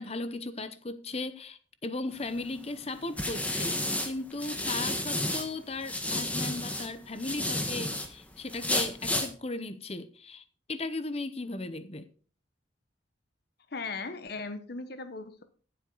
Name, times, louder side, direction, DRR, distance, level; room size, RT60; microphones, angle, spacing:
voice 1, 0.0-12.1, left 2 dB, 30° left, 0.8 m, -37 dB
sound 1, 2.2-5.5 5.8-8.1 8.5-9.3, left 1 dB, 5° left, 1.4 m, -31 dB
voice 2, 13.7-15.4, left 3 dB, 55° left, 1.0 m, -38 dB
14.0 x 7.9 x 3.9 m
head